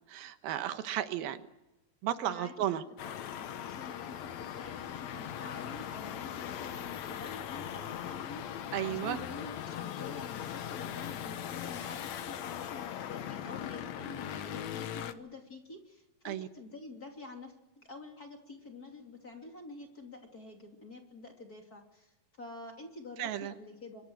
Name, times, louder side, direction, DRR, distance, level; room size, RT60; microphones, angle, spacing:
voice 1, 0.1-1.4 2.0-2.8 8.7-9.2 16.3-16.5 23.2-23.5, right 11 dB, 80° right, 10 dB, 3.0 m, -34 dB
voice 2, 2.2-2.5 3.0-24.0, left 3 dB, 25° left, 2 dB, 2.8 m, -48 dB
sound 1, 3.0-15.1, left 10 dB, 65° left, 1.9 m, -40 dB
25.0 x 22.5 x 6.3 m, 1.0 s
omnidirectional pair, 4.3 m